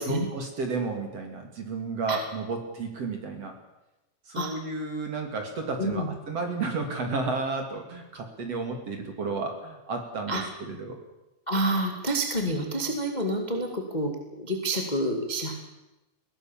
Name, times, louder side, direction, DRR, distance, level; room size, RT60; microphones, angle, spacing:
voice 1, 0.0-3.5 4.3-11.0, right 3 dB, 40° right, 4 dB, 2.6 m, -32 dB
voice 2, 5.8-6.1 10.3-10.4 11.5-15.5, right 1 dB, 35° left, 3 dB, 0.6 m, -28 dB
22.5 x 17.5 x 7.4 m, 0.96 s
omnidirectional pair, 5.6 m